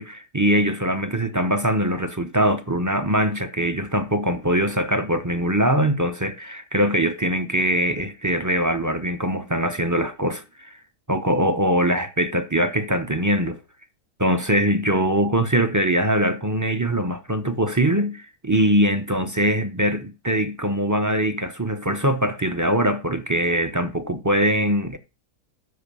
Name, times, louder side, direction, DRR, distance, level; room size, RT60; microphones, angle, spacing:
voice 1, 0.0-10.8 11.1-13.6 14.2-25.0, right 1 dB, 30° right, 0.3 m, -22 dB
12.5 x 5.5 x 6.9 m
omnidirectional pair, 1.7 m